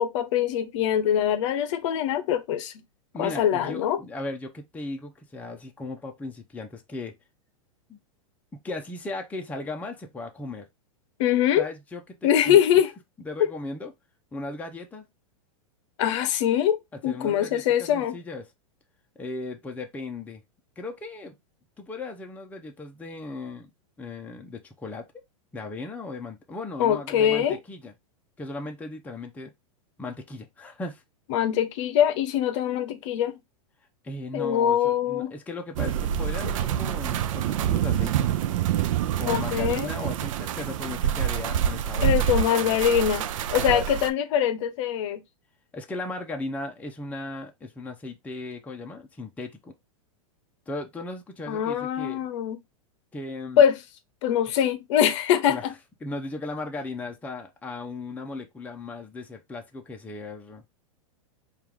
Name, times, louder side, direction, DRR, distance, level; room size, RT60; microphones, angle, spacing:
voice 1, 0.0-2.7 3.2-4.0 11.2-11.7 12.2-12.9 16.0-18.2 26.8-27.6 31.3-33.4 34.3-35.3 36.4-36.5 39.3-39.9 42.0-45.2 51.5-52.6 53.6-53.8 54.2-55.7, left 9 dB, 55° left, 0.7 m, -23 dB
voice 2, 3.1-7.2 7.9-8.0 8.6-10.7 11.6-12.6 13.2-13.9 14.3-15.1 16.9-18.5 19.2-20.4 20.8-21.4 21.8-23.7 24.0-25.1 25.5-27.9 28.4-29.5 30.0-31.0 34.0-38.3 39.2-42.8 43.6-43.9 45.7-49.7 50.7-52.3 53.1-53.6 55.5-55.6 56.0-60.6, left 2 dB, 10° left, 0.6 m, -37 dB
sound 1, 35.8-44.1, right 10 dB, 65° right, 0.5 m, -26 dB
4.4 x 2.5 x 3.5 m
hypercardioid pair, 125°, 18 cm